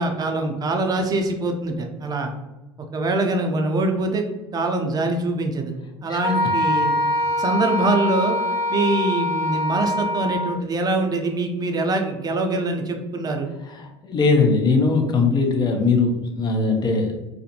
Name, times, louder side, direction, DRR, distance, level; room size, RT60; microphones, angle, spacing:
voice 1, 0.0-2.3 2.9-4.3 4.5-5.7 6.0-7.0 7.4-8.4 8.7-13.5, right 2 dB, 30° right, 3 dB, 0.5 m, -23 dB
Wind instrument woodwind instrument, 6.2-10.6, left 1 dB, 80° left, 0.9 m, -23 dB
voice 2, 13.7-17.2, left 4 dB, 35° left, 3 dB, 0.6 m, -20 dB
2.5 x 2.1 x 2.7 m, 1.0 s
hypercardioid pair, 75°, 13 cm